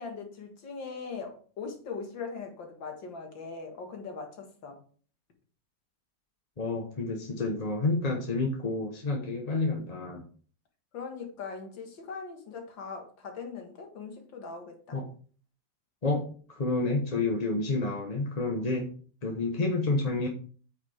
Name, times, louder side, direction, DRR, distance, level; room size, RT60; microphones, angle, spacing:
voice 1, 0.0-4.8 10.9-15.0, left 5 dB, 85° left, 4 dB, 2.3 m, -40 dB
voice 2, 6.6-10.2 14.9-15.1 16.0-16.2 16.5-18.9 19.2-20.3, left 3 dB, 30° left, 1 dB, 0.9 m, -29 dB
8.7 x 6.4 x 3.5 m, 0.43 s
omnidirectional pair, 2.0 m